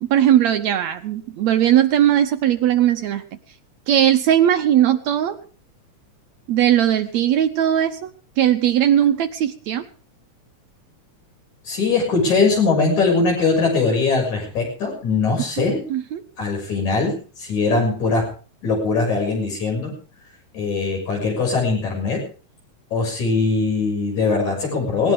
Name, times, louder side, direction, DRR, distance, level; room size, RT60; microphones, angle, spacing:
voice 1, 0.0-3.2 3.9-5.4 6.5-8.1 8.4-9.8 15.6-16.2, right 11 dB, 70° right, 8 dB, 1.9 m, -18 dB
voice 2, 11.6-15.8 16.4-17.1 17.4-18.2 18.6-19.9 20.5-22.2 22.9-25.1, left 4 dB, 65° left, 0 dB, 8.0 m, -21 dB
19.0 x 18.5 x 3.7 m, 0.40 s
omnidirectional pair, 3.7 m